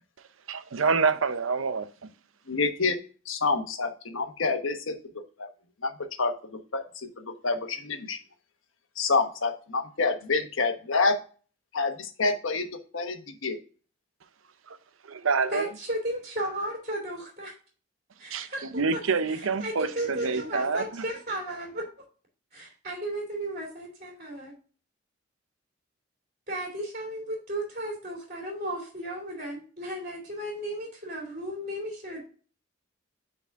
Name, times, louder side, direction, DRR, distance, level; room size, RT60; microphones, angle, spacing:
voice 1, 0.5-2.1 14.7-14.8 15.0-15.7 18.3-18.4 18.7-21.0, right 5 dB, 90° right, 0.6 m, -27 dB
voice 2, 2.5-3.0 3.2-5.5 5.8-5.9 6.2-6.3 6.7-8.2 9.0-11.2 11.7-12.6 12.9-13.6, left 4 dB, 90° left, 1.2 m, -27 dB
voice 3, 15.5-17.5 18.2-18.6 18.9-19.0 19.3-21.9 22.5-24.5 26.5-32.2, right 1 dB, 40° right, 2.6 m, -34 dB
9.3 x 4.1 x 3.5 m
head